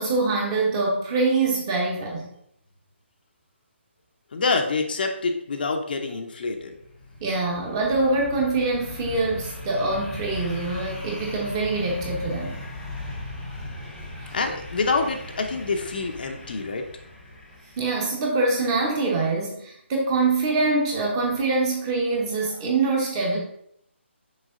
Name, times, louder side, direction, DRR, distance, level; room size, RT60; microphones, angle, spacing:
voice 1, 0.0-2.3 7.2-12.6 14.2-14.3 17.8-23.4, right 3 dB, 20° right, -1 dB, 1.1 m, -24 dB
voice 2, 4.3-6.7 14.3-16.9, left 4 dB, 45° left, 4 dB, 0.7 m, -26 dB
sound 1, 6.7-18.2, left 1 dB, 5° left, 1.0 m, -38 dB
6.3 x 4.8 x 3.8 m, 0.71 s
hypercardioid pair, 165°, 7 cm